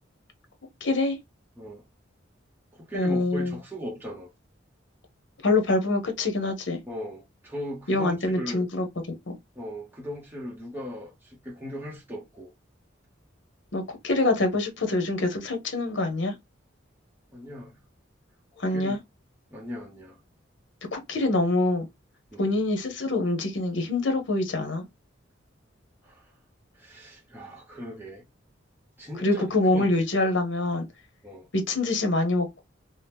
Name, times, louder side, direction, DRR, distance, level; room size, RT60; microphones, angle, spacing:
voice 1, 0.8-1.2 2.9-3.5 5.4-6.8 7.9-8.9 9.3-9.4 13.7-16.4 18.6-19.0 20.9-21.9 22.4-24.9 29.2-30.9 31.5-32.6, left 2 dB, 75° left, 0.8 m, -25 dB
voice 2, 2.7-4.3 6.9-8.7 9.6-12.5 17.3-17.8 18.7-19.0 19.5-20.2 22.3-22.5 26.0-26.3 26.7-28.2 29.0-29.5 29.7-30.0 31.2-31.5, equal, 10° right, 0.7 m, -38 dB
2.8 x 2.1 x 3.4 m
head